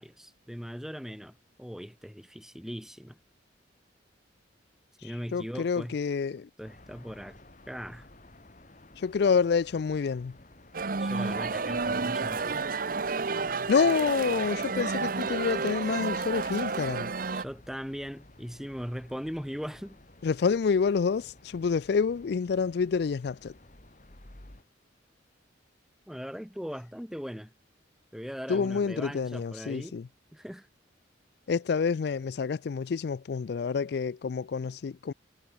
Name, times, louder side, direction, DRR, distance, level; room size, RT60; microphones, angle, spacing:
voice 1, 0.0-3.2 5.0-6.0 6.6-7.4 7.7-8.1 11.0-12.6 17.3-20.0 26.1-27.5 28.1-30.0 30.3-30.7, equal, ahead, 4.1 m, -39 dB
voice 2, 5.3-6.5 9.0-10.3 13.7-17.1 20.2-23.5 28.5-30.1 31.5-35.1, left 5 dB, 60° left, 0.4 m, -28 dB
sound 1, 6.6-24.6, left 1 dB, 40° left, 2.5 m, -55 dB
sound 2, 10.7-17.4, right 4 dB, 50° right, 0.9 m, -31 dB
head